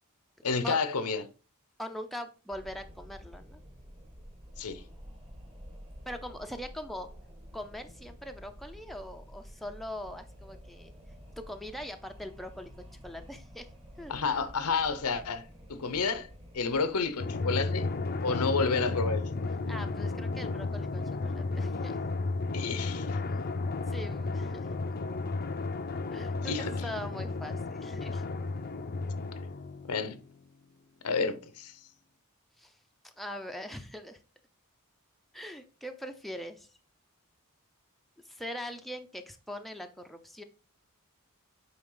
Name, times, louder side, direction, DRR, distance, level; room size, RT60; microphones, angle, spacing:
voice 1, 0.4-1.2 4.6-4.8 14.1-16.3 16.5-17.9 18.2-19.5 22.5-23.2 26.4-26.8 29.9-30.2 31.0-31.7, left 4 dB, 80° left, 0.8 m, -30 dB
voice 2, 1.8-3.6 6.1-7.1 7.5-10.9 11.4-13.7 14.0-14.1 19.7-22.0 23.3-23.4 23.9-24.7 26.1-28.2 32.6-32.7 33.0-34.2 35.3-36.7 38.3-40.4, equal, ahead, 0.6 m, -42 dB
Wind, 2.5-17.8, equal, 25° right, 1.5 m, -50 dB
Drum, 17.2-30.3, left 3 dB, 45° left, 0.6 m, -33 dB
8.8 x 3.5 x 3.8 m
head